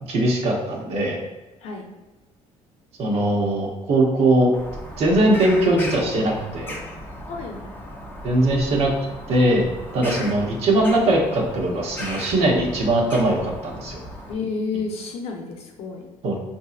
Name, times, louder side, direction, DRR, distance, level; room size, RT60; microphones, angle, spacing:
voice 1, 0.1-1.2 3.0-4.5 5.0-6.7 8.2-8.9 9.3-9.7 9.9-14.0 16.2-16.4, right 1 dB, 55° right, -1 dB, 0.9 m, -20 dB
Bird vocalization bird call bird song, 4.5-14.3, left 1 dB, 15° left, 0.5 m, -37 dB
voice 2, 7.3-7.6 14.3-16.1, left 4 dB, 55° left, 2 dB, 0.7 m, -30 dB
6.0 x 2.7 x 2.4 m, 1.1 s
cardioid pair, 175°, 12 cm